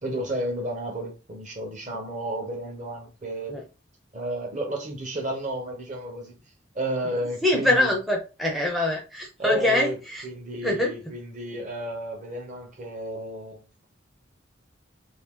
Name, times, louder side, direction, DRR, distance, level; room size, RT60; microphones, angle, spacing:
voice 1, 0.0-3.5 4.1-6.4 6.7-7.9 9.4-10.0 10.2-13.8, right 1 dB, 40° right, 0.9 m, -32 dB
voice 2, 7.4-10.2 10.6-11.1, left 1 dB, ahead, 0.6 m, -24 dB
2.8 x 2.7 x 3.6 m
head